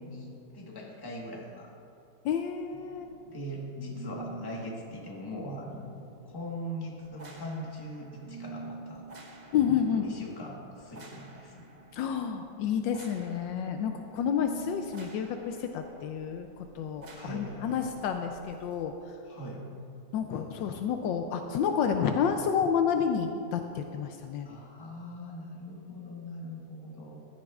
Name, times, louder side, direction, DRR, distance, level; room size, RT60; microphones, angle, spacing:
voice 1, 0.0-1.7 3.3-9.1 9.9-11.6 17.1-17.8 19.2-19.7 24.4-27.2, equal, 15° left, -2 dB, 1.1 m, -41 dB
voice 2, 2.2-3.1 9.5-10.1 11.9-16.5 16.7-18.9 20.1-24.5, left 7 dB, 80° left, 5 dB, 1.3 m, -30 dB
sound 1, 3.0-18.8, right 4 dB, 70° right, 0.4 m, -49 dB
15.0 x 10.0 x 2.4 m, 2.6 s
omnidirectional pair, 2.0 m